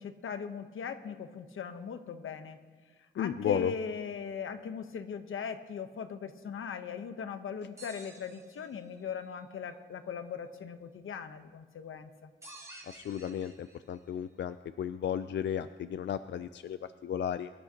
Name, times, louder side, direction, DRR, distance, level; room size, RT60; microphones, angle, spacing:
voice 1, 0.0-2.6 3.2-12.3, left 6 dB, 80° left, 8 dB, 1.0 m, -39 dB
voice 2, 3.2-3.7 12.9-17.5, left 9 dB, 60° left, 11 dB, 0.4 m, -34 dB
sound 1, 7.8-9.0 12.4-14.0, right 2 dB, 15° right, 1.7 m, -52 dB
24.0 x 12.5 x 2.9 m, 1.5 s
wide cardioid pair, 140°, 21 cm